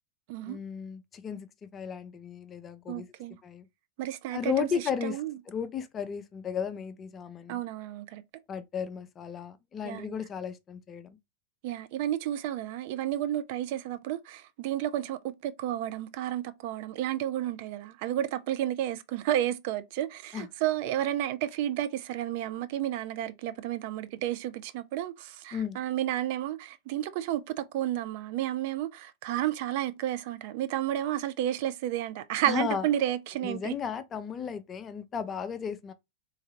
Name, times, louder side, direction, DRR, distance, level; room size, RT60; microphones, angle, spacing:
voice 1, 0.5-3.1 3.4-3.7 4.3-5.2 5.5-7.6 8.5-11.2 20.3-20.5 25.5-25.8 32.5-32.8 33.4-35.9, left 7 dB, 25° left, 0.5 m, -34 dB
voice 2, 2.9-3.4 4.0-4.7 5.0-5.4 7.5-8.2 9.8-10.2 11.6-33.7, right 12 dB, 50° right, 0.4 m, -31 dB
3.7 x 3.2 x 2.8 m
figure-of-eight pair, 90°, 0 cm